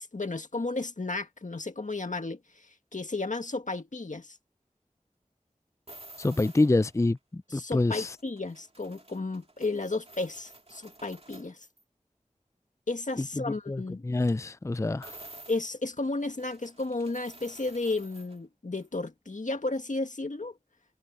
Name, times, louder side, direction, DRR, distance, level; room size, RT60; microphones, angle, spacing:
voice 1, 0.0-2.7 2.9-4.4 7.5-11.7 12.9-14.0 15.5-20.6, left 3 dB, 75° left, 1.8 m, -33 dB
sound 1, 5.9-6.9 7.6-11.8 15.0-18.4 18.8-18.9, right 2 dB, 50° right, 2.4 m, -51 dB
voice 2, 6.2-8.2 13.2-15.2, left 2 dB, 25° left, 0.4 m, -27 dB
wide cardioid pair, 45°, 13 cm